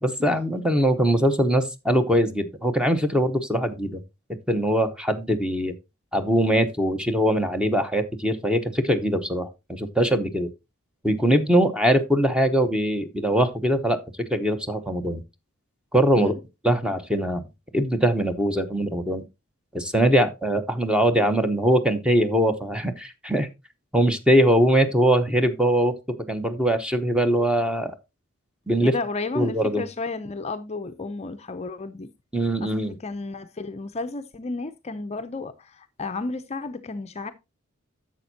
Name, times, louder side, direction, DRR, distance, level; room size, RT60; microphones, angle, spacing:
voice 1, 0.0-4.0 4.5-5.7 6.1-10.5 11.0-14.0 14.3-15.2 15.9-16.3 16.6-17.4 17.7-19.2 19.7-23.5 23.9-25.9 26.3-27.9 28.7-28.9 29.3-29.8 32.3-32.9, equal, 5° right, 0.9 m, -22 dB
voice 2, 28.8-32.1 32.6-37.3, left 3 dB, 30° left, 0.5 m, -32 dB
10.5 x 7.2 x 2.7 m
head